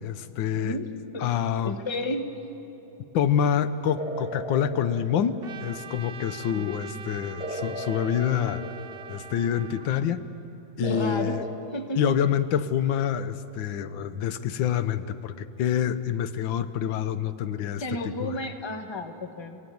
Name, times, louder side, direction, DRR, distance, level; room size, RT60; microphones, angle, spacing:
voice 1, 0.0-0.8 1.2-1.8 3.1-5.4 5.6-8.6 9.1-10.2 10.8-11.4 12.0-18.4, left 9 dB, 90° left, 12 dB, 1.6 m, -27 dB
voice 2, 0.6-1.3 1.6-2.3 6.5-6.8 10.8-11.4 11.7-12.2 17.8-19.6, left 1 dB, 20° left, 6 dB, 1.0 m, -32 dB
sound 1, 4.0-6.0 7.4-9.5 10.8-11.6, right 1 dB, 5° right, 1.2 m, -36 dB
Trumpet, 5.4-10.1, right 6 dB, 80° right, 0.5 m, -43 dB
29.0 x 16.0 x 9.3 m, 3.0 s
omnidirectional pair, 2.1 m